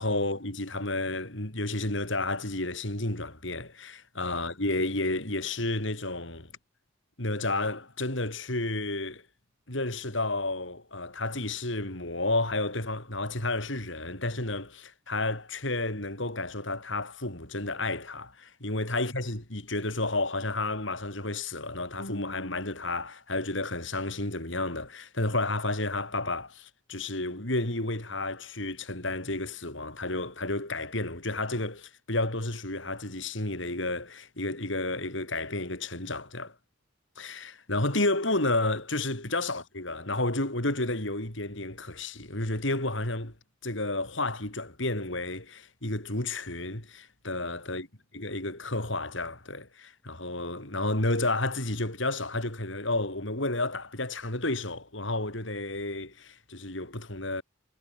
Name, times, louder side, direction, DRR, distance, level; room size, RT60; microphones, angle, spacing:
voice 1, 0.0-6.5 7.2-9.2 9.7-36.5 37.2-43.3 43.6-47.9 48.1-57.4, left 2 dB, 65° left, 5.5 m, -31 dB
head